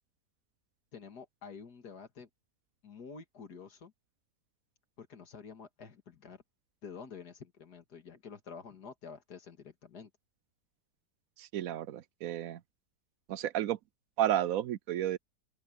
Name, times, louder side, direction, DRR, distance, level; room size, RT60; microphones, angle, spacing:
voice 1, 0.9-2.3 2.8-3.9 5.0-6.4 6.8-10.1, left 6 dB, 70° left, 2.5 m, -49 dB
voice 2, 11.4-12.6 13.3-13.8 14.2-15.2, right 12 dB, 70° right, 0.9 m, -32 dB
open air
omnidirectional pair, 1.8 m